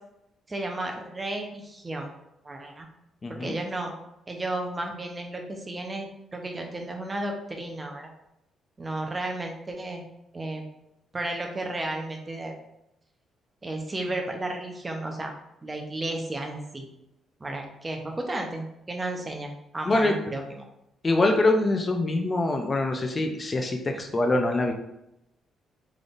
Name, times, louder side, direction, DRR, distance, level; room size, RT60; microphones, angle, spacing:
voice 1, 0.5-2.1 2.4-2.9 3.3-3.9 4.3-8.1 8.8-10.0 10.3-10.6 11.1-12.5 13.6-15.3 15.6-16.8 17.4-20.6 23.9-24.0, right 2 dB, 25° right, 2 dB, 0.8 m, -33 dB
voice 2, 3.2-3.5 19.9-20.1 21.0-24.7, left 2 dB, 30° left, 4 dB, 0.5 m, -24 dB
3.8 x 3.4 x 2.5 m, 0.83 s
cardioid pair, 90°, 0 cm